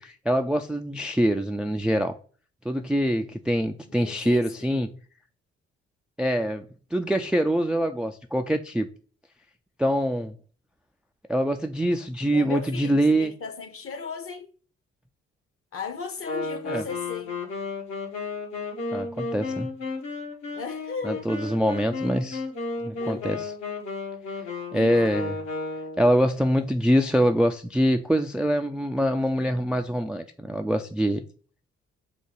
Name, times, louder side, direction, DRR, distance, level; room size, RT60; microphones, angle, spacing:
voice 1, 0.0-2.2 2.7-4.9 6.2-6.6 6.9-8.9 9.8-10.3 11.3-13.3 16.7-16.8 18.9-19.7 21.0-22.4 22.8-23.5 24.7-25.3 26.0-31.2, equal, 5° right, 0.3 m, -24 dB
voice 2, 3.8-4.7 12.3-14.5 15.7-17.3 20.5-21.3 23.0-23.3 24.7-25.2, left 5 dB, 45° left, 0.9 m, -36 dB
Wind instrument woodwind instrument, 16.2-26.1, left 3 dB, 65° left, 1.1 m, -33 dB
3.8 x 2.2 x 4.4 m
hypercardioid pair, 40°, 32 cm